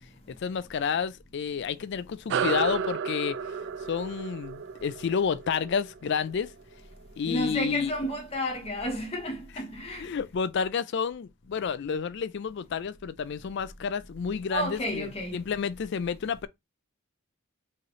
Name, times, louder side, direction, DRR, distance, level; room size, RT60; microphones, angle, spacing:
voice 1, 0.3-3.5 3.9-6.5 7.2-7.9 10.0-16.5, left 6 dB, 50° left, 0.3 m, -30 dB
sound 1, 2.3-7.1, right 7 dB, 55° right, 0.3 m, -33 dB
voice 2, 7.2-10.1 14.5-15.3, equal, 25° left, 0.9 m, -31 dB
4.6 x 3.1 x 3.0 m
head